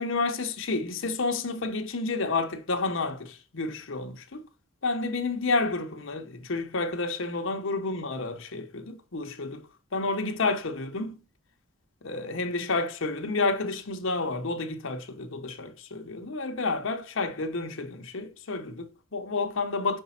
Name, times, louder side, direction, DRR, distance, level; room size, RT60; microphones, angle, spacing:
voice 1, 0.0-4.4 4.8-9.6 9.9-11.2 12.0-20.0, left 3 dB, 60° left, 0.9 m, -30 dB
5.4 x 4.1 x 5.7 m
head